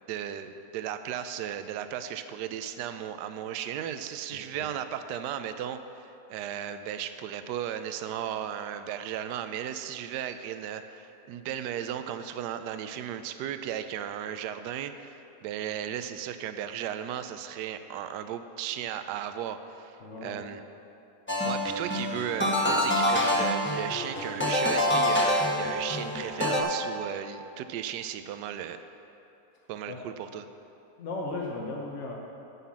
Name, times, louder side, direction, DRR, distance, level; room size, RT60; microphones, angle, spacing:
voice 1, 0.1-20.0 20.2-20.6 21.4-28.8 29.7-30.5, right 10 dB, 75° right, 10 dB, 1.1 m, -35 dB
voice 2, 20.0-20.4 29.9-30.0 31.0-32.1, left 2 dB, 50° left, -2 dB, 1.2 m, -36 dB
sound 1, 21.3-26.6, left 1 dB, 10° left, 1.0 m, -26 dB
11.5 x 5.7 x 7.3 m, 2.8 s
omnidirectional pair, 1.9 m